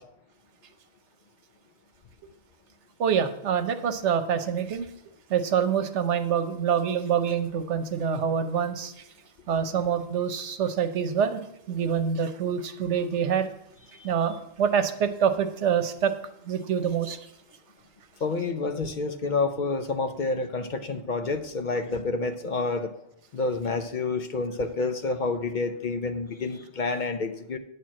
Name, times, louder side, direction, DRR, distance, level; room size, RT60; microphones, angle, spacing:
voice 1, 3.0-4.9 5.3-8.9 9.5-11.4 11.7-13.5 14.0-16.1 16.5-17.2, right 7 dB, 85° right, 9 dB, 1.1 m, -26 dB
voice 2, 18.2-22.9 23.3-27.6, left 3 dB, 50° left, 8 dB, 0.7 m, -29 dB
9.9 x 4.5 x 7.4 m, 0.80 s
omnidirectional pair, 1.2 m